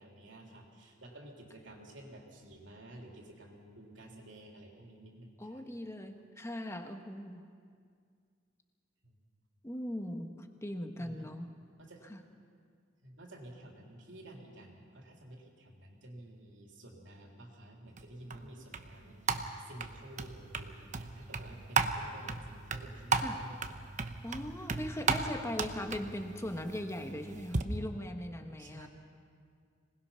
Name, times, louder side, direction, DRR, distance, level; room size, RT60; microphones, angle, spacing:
voice 1, 0.0-5.6 9.0-9.1 11.0-11.3 11.8-12.0 13.0-24.1 28.6-28.9, right 1 dB, 70° right, 0 dB, 3.6 m, -51 dB
voice 2, 5.4-7.4 9.6-11.6 12.1-12.2 23.1-23.4 24.2-28.9, left 1 dB, 15° left, 5 dB, 1.3 m, -39 dB
sound 1, 18.0-27.6, right 4 dB, 40° right, 0.9 m, -36 dB
25.5 x 19.5 x 5.8 m, 2.2 s
head